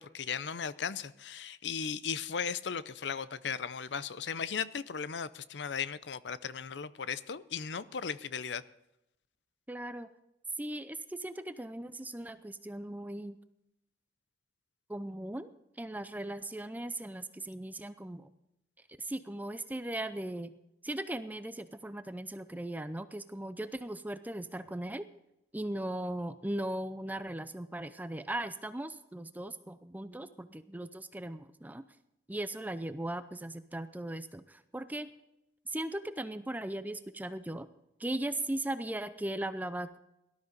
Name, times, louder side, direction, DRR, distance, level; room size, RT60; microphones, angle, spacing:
voice 1, 0.0-8.6, left 6 dB, 90° left, 0.6 m, -37 dB
voice 2, 9.7-10.1 10.6-13.4 14.9-15.5 15.8-18.3 19.0-20.5 20.8-25.1 25.5-31.8 32.3-35.1 35.7-37.7 38.0-40.0, right 1 dB, 10° right, 0.5 m, -38 dB
18.0 x 12.5 x 4.0 m
head